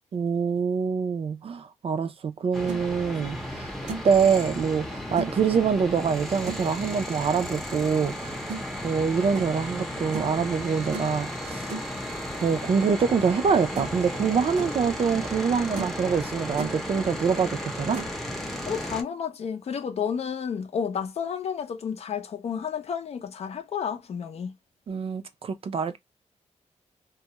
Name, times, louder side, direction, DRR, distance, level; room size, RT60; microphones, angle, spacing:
voice 1, 0.1-3.7 4.0-8.4 8.8-11.7 12.3-18.0 24.9-26.0, right 6 dB, 55° right, 0.4 m, -25 dB
sound 1, 2.4-2.8 3.4-3.5 3.9-4.2 5.2-5.4 6.5-6.7 8.5-8.6 9.3-9.6 10.1-10.4 10.9-11.2 11.7-11.9 13.3-13.4 13.7-14.0 14.4-14.7 15.3-15.4 15.8-16.0 16.3-16.8 17.9-18.2, right 4 dB, 85° right, 0.7 m, -36 dB
sound 2, 2.5-19.0, equal, ahead, 0.6 m, -34 dB
voice 2, 18.6-24.5, left 7 dB, 60° left, 0.5 m, -31 dB
2.3 x 2.0 x 2.8 m
cardioid pair, 100°, 12 cm